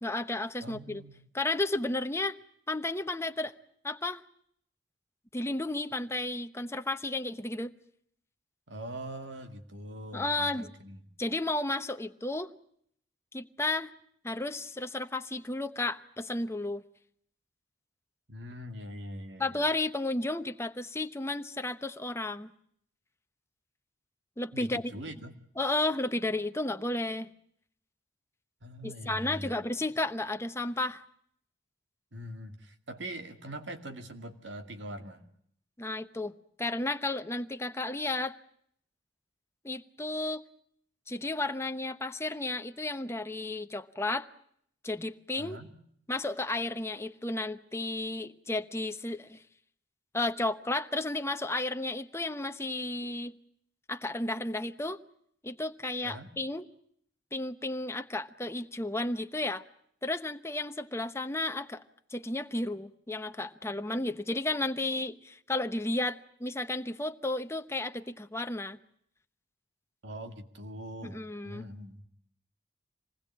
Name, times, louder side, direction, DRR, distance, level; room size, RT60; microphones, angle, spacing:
voice 1, 0.0-1.0 1.3-2.4 2.7-3.5 3.8-4.2 5.3-7.7 10.1-10.7 11.2-12.5 13.3-13.9 14.2-16.8 19.4-22.5 24.4-24.9 25.6-27.3 28.8-31.0 35.8-36.3 36.6-38.4 39.6-40.4 41.1-44.3 44.8-45.6 46.1-49.4 50.1-53.3 53.9-55.0 55.4-56.6 57.3-59.6 60.0-61.8 62.1-68.8 71.0-71.7, left 2 dB, 15° left, 1.0 m, -33 dB
voice 2, 0.6-1.2 8.7-11.0 18.3-19.7 24.5-25.4 28.6-29.5 32.1-35.3 45.4-45.7 56.0-56.3 70.0-72.1, right 1 dB, 70° right, 2.3 m, -42 dB
26.5 x 20.0 x 8.7 m
head